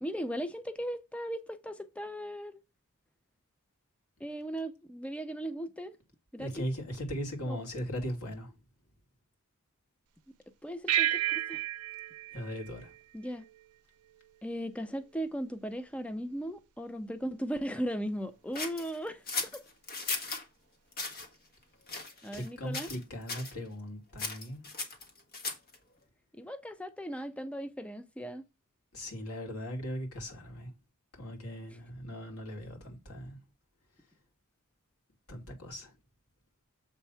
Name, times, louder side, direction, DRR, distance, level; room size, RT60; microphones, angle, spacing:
voice 1, 0.0-2.6 4.2-6.0 6.3-6.7 7.5-7.6 10.6-11.6 13.1-13.4 14.4-19.6 22.2-22.9 26.3-28.4, equal, 5° left, 0.5 m, -37 dB
voice 2, 6.4-8.5 12.3-12.9 22.3-24.6 28.9-30.7 31.1-33.4 35.3-35.9, equal, 75° left, 2.5 m, -39 dB
sound 1, 10.9-13.6, right 12 dB, 85° right, 0.5 m, -32 dB
sound 2, 18.5-20.4 20.9-21.3 21.9-22.5 22.7-23.0 23.3-23.5 24.2-25.8, left 3 dB, 45° left, 1.4 m, -37 dB
7.3 x 3.4 x 5.5 m
head